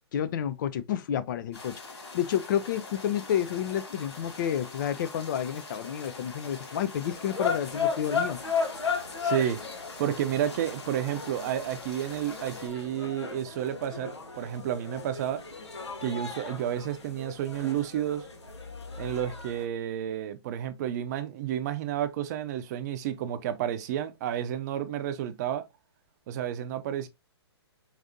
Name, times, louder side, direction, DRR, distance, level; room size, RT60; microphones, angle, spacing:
voice 1, 0.1-1.7 2.1-8.4, left 9 dB, 45° left, 0.5 m, -30 dB
sound 1, 1.5-12.7, left 3 dB, 75° left, 2.6 m, -44 dB
sound 2, 7.0-19.7, left 5 dB, 90° left, 1.0 m, -35 dB
voice 2, 9.2-9.6 10.0-15.4 16.0-18.2 19.0-25.6 26.3-27.1, right 10 dB, 40° right, 0.6 m, -31 dB
4.8 x 2.6 x 2.6 m
hypercardioid pair, 140°, 14 cm